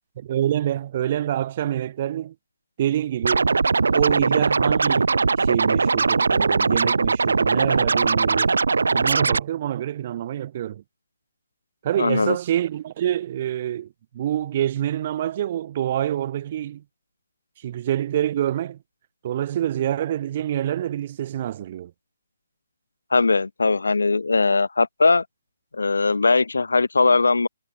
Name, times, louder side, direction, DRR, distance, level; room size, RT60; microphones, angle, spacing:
voice 1, 0.2-2.3 2.8-3.5 3.9-8.6 8.9-10.8 11.8-16.8 17.6-18.8 19.2-21.9, right 11 dB, 40° right, 2.2 m, -26 dB
Scratching (performance technique), 3.2-9.4, right 4 dB, 80° right, 1.4 m, -20 dB
voice 2, 12.0-12.4 23.1-25.2 25.7-27.5, left 3 dB, 90° left, 1.8 m, -20 dB
hypercardioid pair, 155°, 0 cm